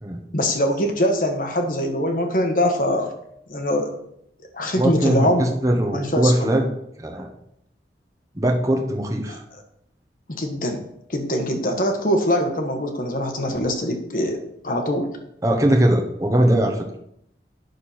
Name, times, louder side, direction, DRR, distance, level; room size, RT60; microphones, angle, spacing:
voice 1, 0.3-3.1 3.5-3.9 4.5-5.5 5.9-6.5 9.3-9.4 10.3-10.8 11.1-14.4 14.6-15.1, equal, 50° left, 4 dB, 1.4 m, -23 dB
voice 2, 4.7-6.7 7.0-7.3 8.3-9.4 15.4-16.8, right 1 dB, 20° right, 1 dB, 1.1 m, -20 dB
9.5 x 6.7 x 4.4 m, 0.75 s
head